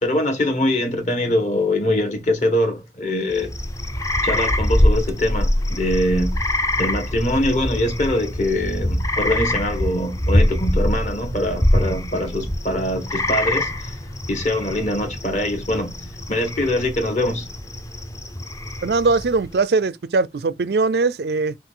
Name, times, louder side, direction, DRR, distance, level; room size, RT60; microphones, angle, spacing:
voice 1, 0.0-3.5 4.2-6.5 6.8-13.9 14.3-17.5, left 1 dB, 40° left, 1.4 m, -23 dB
sound 1, 3.3-19.5, left 1 dB, 20° left, 0.6 m, -24 dB
voice 2, 18.8-21.6, right 3 dB, 65° right, 0.5 m, -20 dB
5.8 x 2.4 x 3.7 m
head